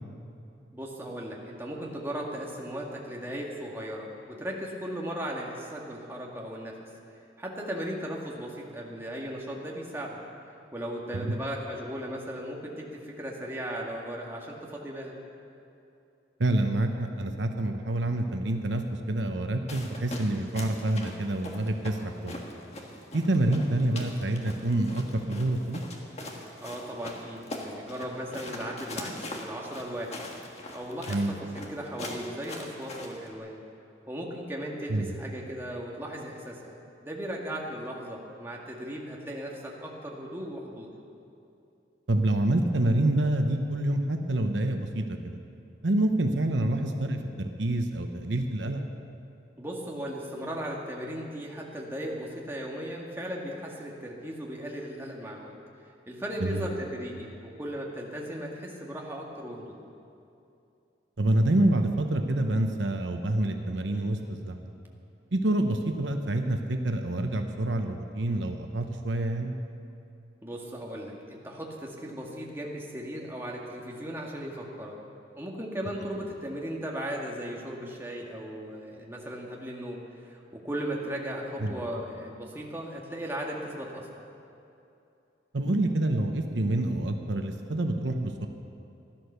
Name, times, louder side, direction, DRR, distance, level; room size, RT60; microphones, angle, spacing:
voice 1, 0.7-6.8 7.4-10.2 10.7-15.1 26.6-30.3 30.7-33.6 34.1-36.8 37.0-40.9 49.6-55.5 56.1-59.8 70.4-75.0 75.4-84.2, equal, 15° right, -2 dB, 1.8 m, -37 dB
voice 2, 16.4-22.4 23.1-25.8 31.1-31.4 34.9-35.1 42.1-45.4 45.8-48.8 56.4-56.7 61.2-64.7 65.3-69.5 81.6-81.8 85.5-88.5, right 1 dB, 75° right, 5 dB, 0.9 m, -27 dB
sound 1, 19.7-33.3, left 1 dB, 35° left, 1.6 m, -42 dB
16.0 x 11.5 x 6.8 m, 2.7 s
head